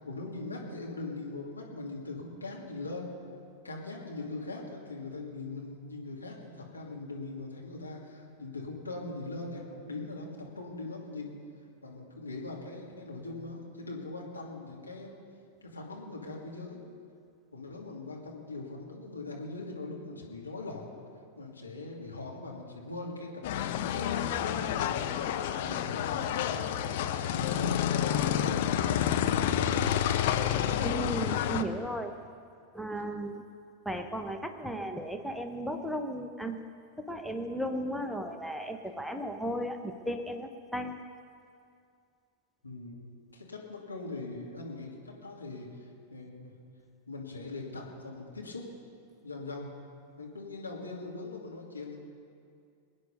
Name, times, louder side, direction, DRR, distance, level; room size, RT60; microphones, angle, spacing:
voice 1, 0.0-3.2 3.6-11.4 11.8-15.1 15.6-16.8 17.5-20.9 21.4-25.1 25.6-26.7 27.3-29.9 42.6-43.0 43.3-46.5 47.1-48.7 49.2-49.7 50.2-52.0, left 2 dB, 80° left, -2 dB, 2.4 m, -41 dB
sound 1, 23.4-31.6, left 10 dB, 50° left, 0.7 m, -29 dB
voice 2, 30.8-32.2 32.7-33.4 33.8-36.6 37.0-41.0, right 1 dB, ahead, 6 dB, 0.9 m, -35 dB
23.0 x 9.7 x 5.4 m, 2.4 s
figure-of-eight pair, 90°, 0 cm